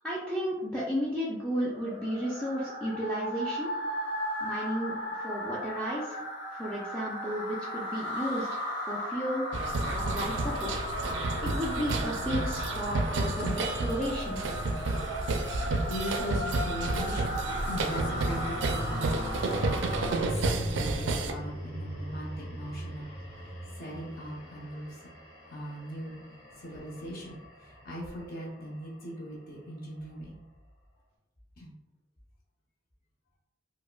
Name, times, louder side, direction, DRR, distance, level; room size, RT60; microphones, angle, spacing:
voice 1, 0.0-3.7 4.4-6.2 6.5-8.6 8.9-9.4 9.8-10.7 11.4-13.5 13.8-14.4, equal, 5° left, -7 dB, 0.4 m, -33 dB
sound 1, 1.6-20.5, equal, 80° left, 1.1 m, -36 dB
sound 2, 9.5-21.3, right 3 dB, 80° right, 0.4 m, -31 dB
voice 2, 13.1-13.6 15.4-19.2 19.6-23.1 23.8-25.1 25.5-26.2 26.6-30.4 31.6-31.7, equal, 50° left, -4 dB, 0.9 m, -39 dB
sound 3, 13.9-15.3 16.9-29.2, equal, 35° left, 1.2 m, -41 dB
4.8 x 2.1 x 2.2 m, 0.94 s
head